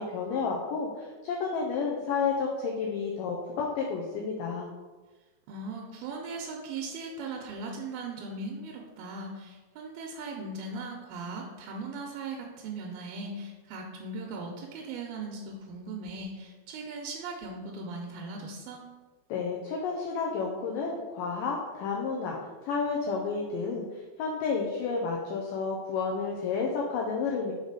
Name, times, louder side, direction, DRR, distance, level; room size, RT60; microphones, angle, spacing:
voice 1, 0.0-4.7 19.3-22.4 22.6-23.9 24.2-27.5, left 5 dB, 85° left, -1 dB, 1.9 m, -31 dB
voice 2, 5.5-18.9, right 3 dB, 80° right, 0 dB, 2.2 m, -38 dB
6.5 x 4.0 x 4.8 m, 1.3 s
omnidirectional pair, 4.6 m